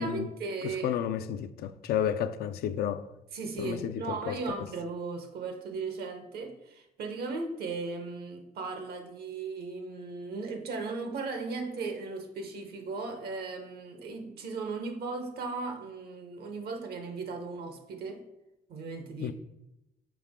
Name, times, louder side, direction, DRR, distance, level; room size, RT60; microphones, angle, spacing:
voice 1, 0.0-1.0 3.3-18.2 18.7-19.3, right 4 dB, 75° right, 1.0 m, -37 dB
voice 2, 0.6-3.1 3.6-4.4 19.2-19.3, left 9 dB, 75° left, 0.4 m, -31 dB
6.0 x 4.7 x 3.6 m
cardioid pair, 105°, 16 cm